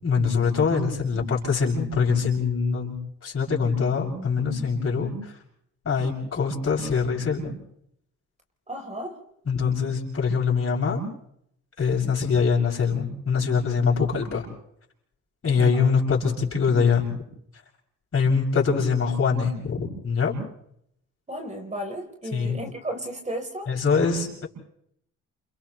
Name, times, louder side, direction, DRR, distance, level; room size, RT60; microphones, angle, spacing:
voice 1, 0.0-3.0 3.2-5.3 5.8-7.5 9.5-11.0 11.8-14.5 15.4-17.1 18.1-20.3 22.3-22.6 23.7-24.5, left 5 dB, 50° left, -1 dB, 7.1 m, -23 dB
voice 2, 8.7-9.2 15.6-15.9 21.3-23.7, right 1 dB, 25° right, 3 dB, 3.9 m, -34 dB
29.0 x 28.5 x 3.2 m, 0.72 s
cardioid pair, 90°, 30 cm